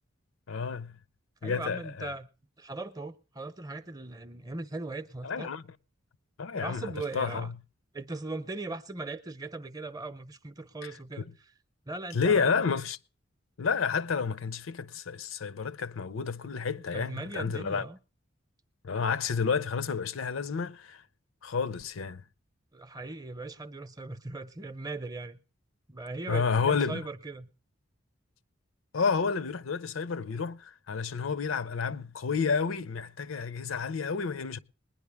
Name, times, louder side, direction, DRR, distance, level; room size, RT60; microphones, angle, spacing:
voice 1, 0.5-1.0 1.4-2.1 5.2-5.6 6.4-7.5 10.8-10.9 11.2-11.3 12.1-13.0 13.6-17.9 18.8-21.0 21.4-22.2 26.3-27.0 28.9-34.6, left 5 dB, 85° left, 0.6 m, -30 dB
voice 2, 1.4-2.3 2.6-5.5 6.5-7.5 7.9-11.5 11.9-12.6 16.9-18.0 22.7-25.4 25.9-27.5, right 2 dB, 20° right, 0.6 m, -39 dB
20.5 x 10.0 x 3.5 m
head